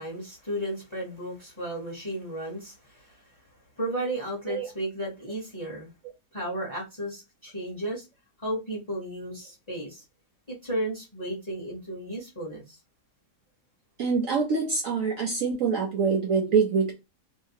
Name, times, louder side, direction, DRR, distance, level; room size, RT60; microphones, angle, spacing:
voice 1, 0.0-3.2 3.8-5.9 6.3-8.0 8.4-10.0 10.5-12.8, right 1 dB, 25° left, 0.7 m, -34 dB
voice 2, 14.0-16.9, right 5 dB, 65° right, 0.9 m, -25 dB
2.8 x 2.1 x 2.7 m
omnidirectional pair, 1.9 m